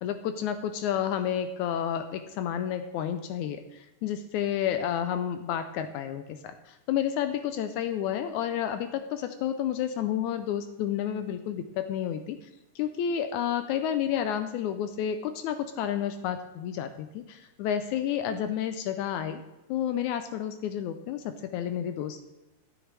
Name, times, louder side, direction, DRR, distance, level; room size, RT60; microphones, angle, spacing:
voice 1, 0.0-12.5 12.8-19.4 19.7-22.2, left 9 dB, 80° left, 9 dB, 1.8 m, -30 dB
12.5 x 7.9 x 3.3 m, 0.99 s
omnidirectional pair, 3.8 m